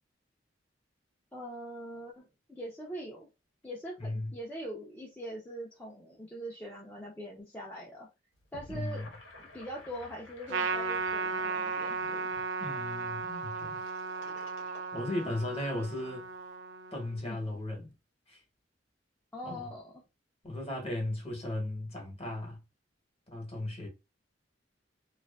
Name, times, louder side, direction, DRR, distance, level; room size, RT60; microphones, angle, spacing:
voice 1, 1.3-3.3 3.6-8.1 8.5-9.0 9.4-12.3 15.7-15.9 17.2-17.4 19.3-19.9, equal, 10° left, 0.4 m, -42 dB
voice 2, 4.0-4.3 8.7-9.1 12.6-13.8 14.9-16.3 16.9-17.9 18.3-18.4 19.4-19.7 20.4-22.6 23.3-23.9, left 1 dB, 35° left, 0.9 m, -36 dB
Gurgling / Sink (filling or washing), 8.3-15.9, left 2 dB, 85° left, 0.9 m, -53 dB
Trumpet, 10.5-17.2, right 4 dB, 70° right, 0.4 m, -35 dB
2.5 x 2.4 x 2.2 m
head